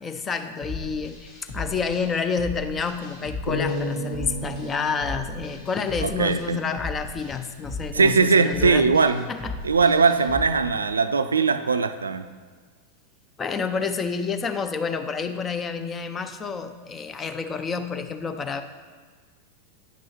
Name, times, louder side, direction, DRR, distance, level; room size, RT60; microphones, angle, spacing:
voice 1, 0.0-8.9 9.3-9.5 13.4-18.6, left 5 dB, 20° left, 8 dB, 0.5 m, -29 dB
sound 1, 0.6-10.5, left 2 dB, 45° left, 1.6 m, -36 dB
sound 2, 3.5-6.9, left 1 dB, 75° left, 1.2 m, -33 dB
voice 2, 6.0-6.6 7.9-9.3 9.6-12.3, right 4 dB, 75° right, 10 dB, 0.3 m, -20 dB
9.3 x 6.1 x 2.9 m, 1.5 s
figure-of-eight pair, 90°, 0 cm